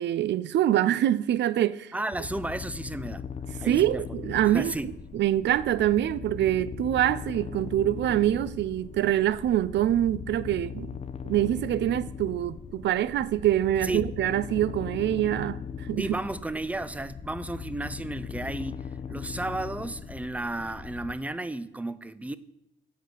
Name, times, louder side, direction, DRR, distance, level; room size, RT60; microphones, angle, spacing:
voice 1, 0.0-1.9 3.7-4.7 5.1-11.0 11.2-16.1, right 12 dB, 65° right, 0.5 m, -25 dB
voice 2, 1.9-3.3 3.6-4.0 4.4-4.9 13.8-14.0 16.0-22.4, right 2 dB, 5° right, 0.4 m, -33 dB
sound 1, 2.1-21.2, left 7 dB, 30° left, 0.6 m, -39 dB
8.2 x 5.0 x 6.2 m
cardioid pair, 90°, 20 cm